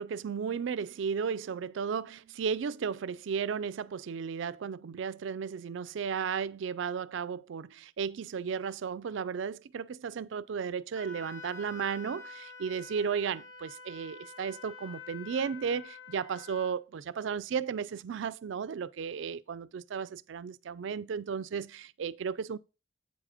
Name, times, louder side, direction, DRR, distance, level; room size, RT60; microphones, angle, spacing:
voice 1, 0.0-22.6, right 6 dB, 65° right, 0.4 m, -34 dB
Wind instrument woodwind instrument, 11.0-16.7, left 5 dB, 80° left, 1.1 m, -47 dB
8.1 x 4.9 x 4.9 m
head